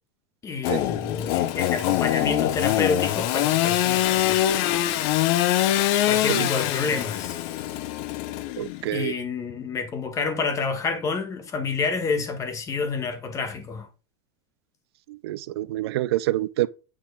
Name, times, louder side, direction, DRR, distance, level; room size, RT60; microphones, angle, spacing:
voice 1, 0.4-4.4 6.1-7.4 8.9-13.9, left 4 dB, 25° left, 1.7 m, -28 dB
Engine / Sawing, 0.6-8.9, left 13 dB, 50° left, 0.8 m, -24 dB
voice 2, 8.6-9.1 15.1-16.7, right 15 dB, 80° right, 0.7 m, -27 dB
9.5 x 3.6 x 7.0 m
supercardioid pair, 150°, 13 cm